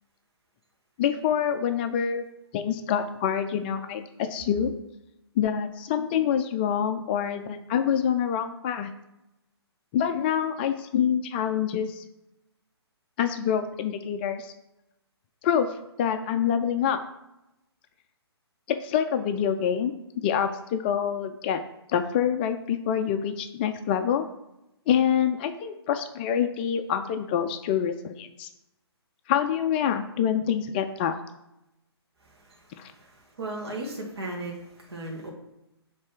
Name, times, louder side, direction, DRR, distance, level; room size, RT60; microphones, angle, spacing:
voice 1, 1.0-2.2 2.5-4.7 5.4-8.9 9.9-12.0 13.2-14.5 15.4-15.7 16.0-17.0 18.7-21.6 21.9-24.2 24.9-28.5 29.3-31.2 32.8-32.9, left 8 dB, 25° left, 7 dB, 0.3 m, -26 dB
voice 2, 33.4-34.5 34.9-35.3, right 2 dB, 65° right, -1 dB, 1.7 m, -34 dB
7.4 x 3.3 x 4.6 m, 0.89 s
figure-of-eight pair, 130°, 14 cm